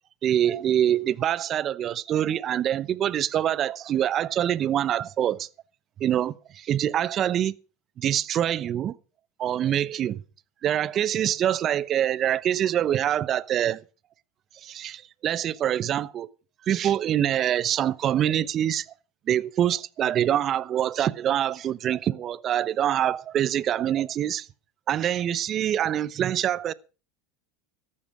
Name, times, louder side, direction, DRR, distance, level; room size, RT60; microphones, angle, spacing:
voice 1, 0.2-5.5 6.0-7.5 8.0-9.0 9.4-10.2 10.6-13.8 14.6-16.3 16.7-18.9 19.3-24.5 24.9-26.7, right 10 dB, 40° right, 0.8 m, -25 dB
14.0 x 12.0 x 4.8 m
hypercardioid pair, 95°, 0 cm